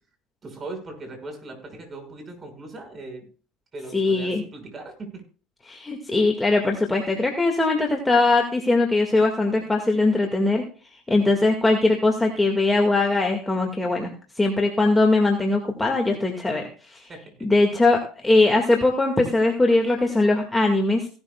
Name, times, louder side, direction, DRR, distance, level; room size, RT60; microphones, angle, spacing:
voice 1, 0.4-3.3 3.7-5.1 11.1-11.4 17.1-17.5, right 2 dB, 30° right, 5 dB, 5.8 m, -39 dB
voice 2, 3.9-4.4 5.7-10.6 11.1-14.1 14.4-17.1 17.4-21.1, left 2 dB, 10° left, 1 dB, 2.0 m, -21 dB
17.0 x 12.0 x 2.4 m, 0.38 s
supercardioid pair, 95°, 0 cm